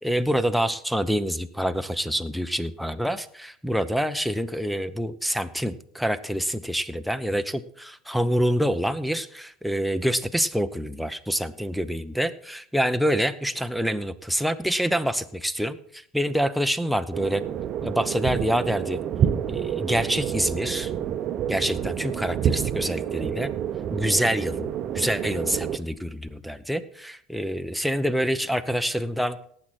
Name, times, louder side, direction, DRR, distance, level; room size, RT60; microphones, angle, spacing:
voice 1, 0.0-17.4 17.8-19.0 19.5-20.9 21.5-23.5 23.9-24.7 24.9-29.4, equal, ahead, 8 dB, 0.8 m, -26 dB
sound 1, 17.1-25.8, right 9 dB, 45° right, 0.8 m, -28 dB
18.0 x 7.7 x 4.2 m, 0.65 s
hypercardioid pair, 75°, 0 cm